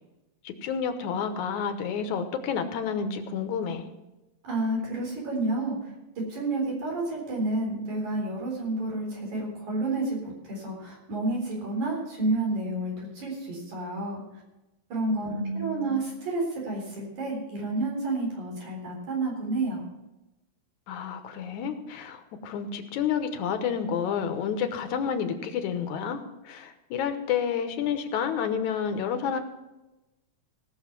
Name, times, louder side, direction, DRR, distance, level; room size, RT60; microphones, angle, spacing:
voice 1, 0.5-3.9 15.2-15.9 20.9-26.2 26.5-29.4, left 7 dB, 85° left, 8 dB, 2.5 m, -30 dB
voice 2, 4.4-5.8 6.3-14.2 14.9-19.8, right 2 dB, 90° right, -2 dB, 5.3 m, -30 dB
17.5 x 6.6 x 6.0 m, 1.0 s
omnidirectional pair, 3.3 m